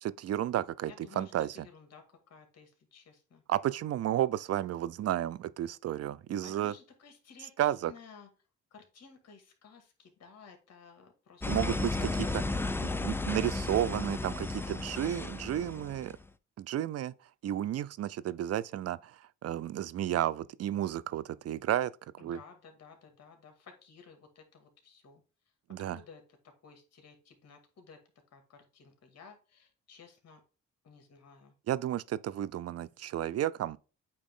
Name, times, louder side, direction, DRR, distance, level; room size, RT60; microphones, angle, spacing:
voice 1, 0.0-1.6 3.5-6.7 7.6-7.9 11.5-12.0 13.0-16.1 16.6-17.1 17.4-21.9 22.2-22.4 25.7-26.0 31.7-33.8, right 12 dB, 55° right, 0.5 m, -32 dB
voice 2, 0.8-3.4 6.4-8.3 8.7-12.2 12.4-13.2 22.2-25.2 25.9-28.0 28.3-30.4 30.8-31.5, left 5 dB, 55° left, 2.2 m, -55 dB
sound 1, 11.4-16.2, left 2 dB, 10° left, 0.4 m, -34 dB
8.6 x 3.1 x 3.6 m
cardioid pair, 90°, 30 cm